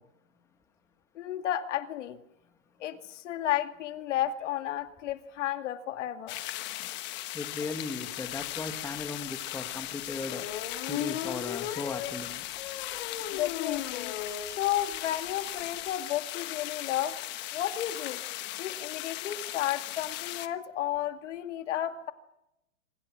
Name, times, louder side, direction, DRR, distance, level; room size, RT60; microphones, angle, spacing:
voice 1, 1.1-2.2 2.8-6.4 13.3-14.2 14.6-17.2 17.5-18.2 18.6-22.1, left 12 dB, 60° left, 7 dB, 2.4 m, -32 dB
sound 1, 6.3-20.5, left 16 dB, 25° left, 1.2 m, -38 dB
voice 2, 7.3-10.4 10.9-12.4 14.2-14.6, left 3 dB, 5° left, 6 dB, 2.0 m, -37 dB
sound 2, 8.5-8.6 9.0-9.1 10.3-14.6 14.9-15.0 15.3-15.4 15.6-15.8, left 11 dB, 45° left, 2.4 m, -36 dB
27.0 x 25.5 x 6.3 m, 0.86 s
hypercardioid pair, 150°, 40 cm